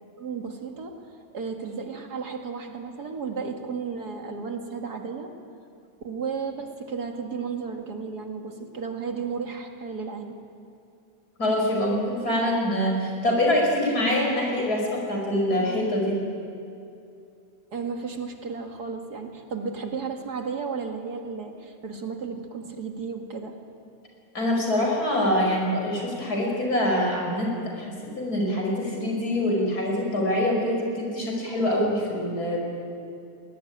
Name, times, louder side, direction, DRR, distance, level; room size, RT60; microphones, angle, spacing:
voice 1, 0.2-1.0 1.3-5.3 6.0-10.4 17.7-23.6, right 5 dB, 80° right, 3 dB, 2.6 m, -33 dB
voice 2, 11.4-16.2 24.3-32.6, left 1 dB, 75° left, 0 dB, 6.2 m, -25 dB
21.5 x 19.0 x 10.0 m, 2.5 s
omnidirectional pair, 1.7 m